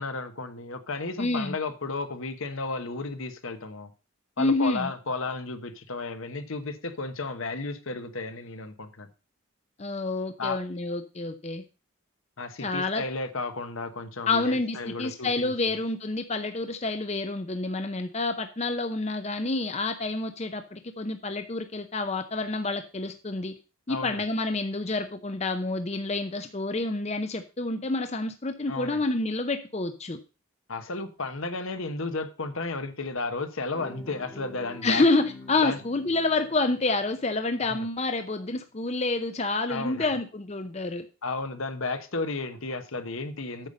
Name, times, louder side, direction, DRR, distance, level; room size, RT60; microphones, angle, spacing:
voice 1, 0.0-3.9 4.4-9.1 10.4-10.6 12.4-15.8 23.9-24.2 28.7-29.0 30.7-35.0 35.6-35.8 37.6-37.9 39.7-40.1 41.2-43.7, left 3 dB, 70° left, 1.1 m, -33 dB
voice 2, 1.2-1.6 4.4-4.9 9.8-11.6 12.6-13.0 14.3-23.5 23.9-30.2 34.8-41.0, left 3 dB, 30° left, 0.6 m, -28 dB
Guitar, 33.7-38.1, left 1 dB, 5° left, 1.3 m, -46 dB
9.0 x 6.9 x 5.3 m
head